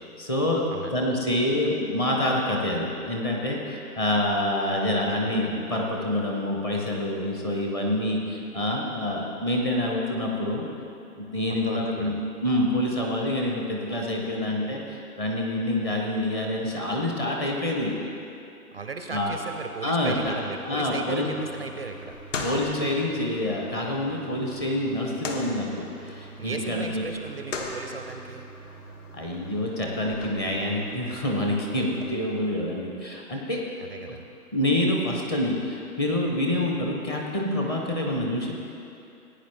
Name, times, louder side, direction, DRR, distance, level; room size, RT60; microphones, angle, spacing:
voice 1, 0.2-0.6 0.9-10.6 11.2-12.1 12.4-17.9 19.1-19.3 19.8-20.4 20.6-21.3 22.4-27.1 29.1-33.6 34.5-38.5, left 1 dB, 15° left, -1 dB, 0.8 m, -27 dB
voice 2, 11.5-12.2 18.7-22.2 26.4-28.5 33.8-34.2, right 4 dB, 40° right, 5 dB, 0.4 m, -36 dB
sound 1, 20.1-32.1, left 1 dB, 50° left, 1.3 m, -40 dB
16.5 x 9.3 x 3.3 m, 2.7 s
hypercardioid pair, 145°, 47 cm